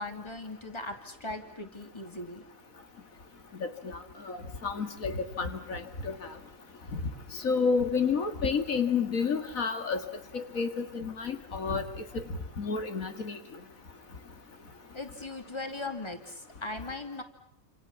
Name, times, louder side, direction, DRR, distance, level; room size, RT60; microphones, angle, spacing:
voice 1, 0.0-2.4 14.9-17.2, left 2 dB, 20° left, 6 dB, 2.9 m, -39 dB
voice 2, 3.6-4.0 4.3-6.1 6.9-7.0 7.3-10.0 10.3-11.8 12.1-12.2 12.6-13.4, left 5 dB, 90° left, 8 dB, 2.6 m, -30 dB
29.0 x 27.5 x 7.3 m, 0.67 s
omnidirectional pair, 1.4 m